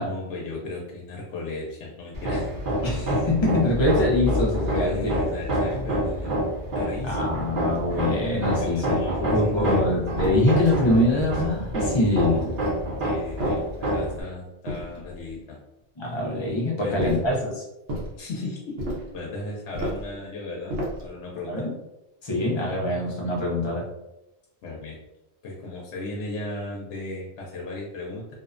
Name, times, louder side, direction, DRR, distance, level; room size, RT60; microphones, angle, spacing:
voice 1, 0.0-2.5 4.7-6.4 6.7-7.3 8.6-9.9 13.0-15.6 16.3-16.4 16.8-17.2 18.2-18.8 19.1-21.7 24.6-25.0 25.4-28.3, left 2 dB, 80° left, -2 dB, 0.9 m, -35 dB
Hammer, 2.1-14.2, equal, 55° right, 0.7 m, -27 dB
voice 2, 2.8-5.1 7.1-8.8 9.3-12.5 16.0-17.4 21.5-21.7 22.2-23.8, left 1 dB, 35° left, -3 dB, 0.4 m, -24 dB
sound 1, 10.2-10.6 11.2-11.8 12.3-12.8 13.4-14.0 14.7-15.3 17.0-17.4 17.9-18.2 18.8-19.2 19.7-20.1 20.7-21.1, equal, 75° right, 1.0 m, -33 dB
2.6 x 2.1 x 2.4 m, 0.91 s
omnidirectional pair, 1.2 m